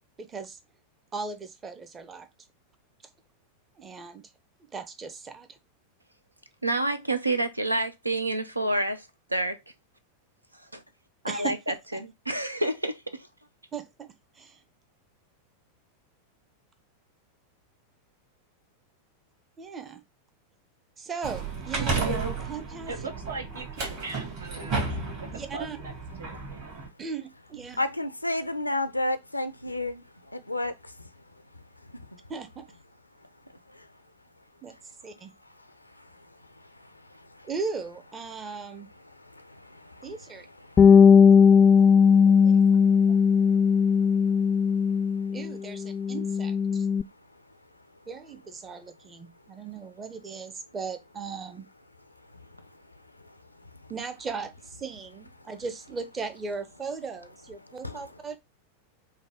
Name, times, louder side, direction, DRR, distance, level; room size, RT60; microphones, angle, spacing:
voice 1, 0.2-0.6 1.1-2.3 3.8-4.3 4.6-5.6 11.3-11.6 11.9-12.0 13.7-14.6 19.6-20.0 21.0-22.9 25.3-25.8 27.0-27.9 32.3-32.6 34.6-34.7 35.0-35.3 37.4-38.9 40.0-40.5 41.6-41.9 42.2-42.8 45.3-46.9 48.1-51.6 53.9-58.4, right 5 dB, 20° right, 0.7 m, -38 dB
voice 2, 6.6-9.6 10.7-10.8 11.2-13.3, right 2 dB, 85° right, 0.5 m, -28 dB
sound 1, 21.2-26.9, right 4 dB, 45° right, 2.1 m, -32 dB
voice 3, 22.9-25.9 26.2-26.7, right 3 dB, 65° right, 0.9 m, -40 dB
voice 4, 27.8-30.0 30.3-30.7 33.7-33.8 37.4-37.5 39.3-40.1 40.6-41.4 41.7-41.8 57.8-58.0, left 2 dB, 85° left, 0.5 m, -32 dB
Bass guitar, 40.8-45.5 45.8-47.0, left 6 dB, 25° left, 0.3 m, -18 dB
5.4 x 2.2 x 3.6 m
figure-of-eight pair, 90°, 0 cm